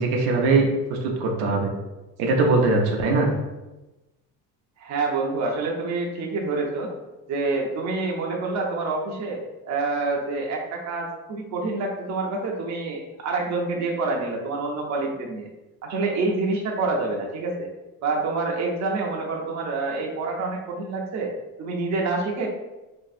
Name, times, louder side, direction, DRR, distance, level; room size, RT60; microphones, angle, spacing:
voice 1, 0.0-1.7 2.2-3.3, right 3 dB, 90° right, 0 dB, 0.6 m, -21 dB
voice 2, 4.8-6.9 7.3-15.5 15.8-17.7 18.0-21.3 21.6-22.5, right 3 dB, 45° right, 0 dB, 0.7 m, -27 dB
3.0 x 2.7 x 2.4 m, 1.0 s
cardioid pair, 105°, 37 cm